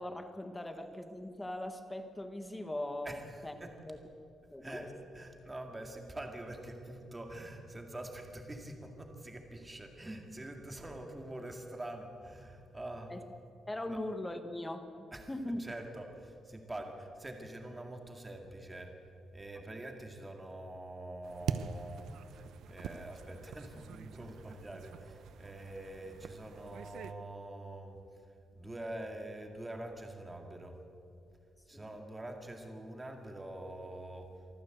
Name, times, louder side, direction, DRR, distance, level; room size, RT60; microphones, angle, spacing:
voice 1, 0.0-3.5 3.9-4.0 4.5-4.9 13.1-13.2 13.7-15.6 19.5-19.6 31.7-31.8, left 1 dB, 10° left, 7 dB, 1.2 m, -40 dB
voice 2, 3.0-3.7 4.6-13.1 13.9-14.0 15.1-18.9 19.3-28.0 28.6-30.8 31.7-34.3, right 1 dB, 15° right, 4 dB, 2.0 m, -45 dB
sound 1, 21.2-27.1, right 7 dB, 75° right, 0.8 m, -44 dB
24.5 x 14.5 x 7.9 m, 2.5 s
wide cardioid pair, 170°, 0 cm